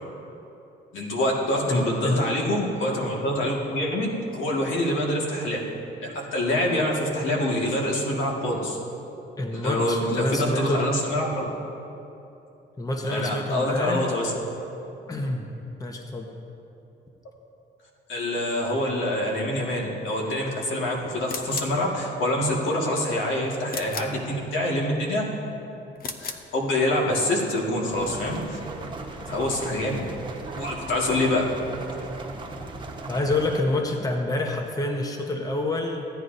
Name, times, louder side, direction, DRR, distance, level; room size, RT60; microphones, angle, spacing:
voice 1, 0.9-5.6 6.0-8.8 9.5-11.4 13.1-14.3 18.1-25.3 26.2-28.6 29.3-30.0 30.5-31.5, left 1 dB, 80° left, -2 dB, 1.8 m, -26 dB
voice 2, 1.7-2.3 9.4-10.9 12.8-14.1 15.1-15.5 15.8-16.3 33.1-36.1, left 2 dB, 20° left, 3 dB, 0.9 m, -27 dB
sound 1, 21.3-21.8 23.7-24.2 26.0-26.5, left 4 dB, 50° left, 0.7 m, -35 dB
sound 2, 27.9-33.6, right 3 dB, 25° right, 1.1 m, -37 dB
15.5 x 9.6 x 2.6 m, 2.9 s
cardioid pair, 90°, 20 cm